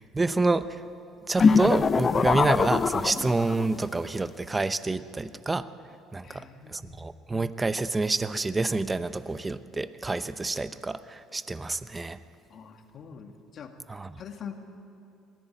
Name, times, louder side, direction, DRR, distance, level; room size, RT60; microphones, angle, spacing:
voice 1, 0.1-0.7 1.3-5.7 6.1-12.2 13.9-14.2, right 3 dB, 20° right, 13 dB, 0.8 m, -28 dB
sound 1, 1.4-3.8, left 5 dB, 35° left, 0.6 m, -23 dB
voice 2, 6.2-7.0 12.5-13.7 14.2-14.6, left 7 dB, 50° left, 4 dB, 2.1 m, -44 dB
21.0 x 15.5 x 9.3 m, 2.5 s
supercardioid pair, 95°, 0 cm